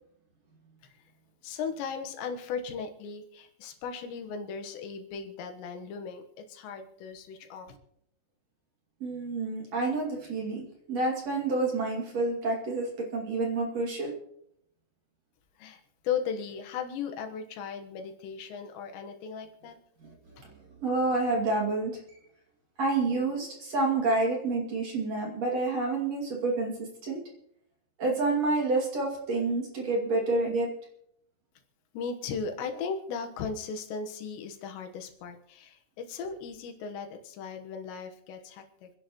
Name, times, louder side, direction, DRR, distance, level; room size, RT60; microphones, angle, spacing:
voice 1, 1.4-7.8 15.6-19.8 31.9-38.9, left 6 dB, 85° left, 5 dB, 3.5 m, -37 dB
voice 2, 9.0-14.1 20.0-20.1 20.4-20.5 20.8-22.0 22.8-27.2 28.0-30.7, right 3 dB, 45° right, -1 dB, 3.2 m, -28 dB
28.5 x 10.5 x 3.1 m, 0.73 s
omnidirectional pair, 4.9 m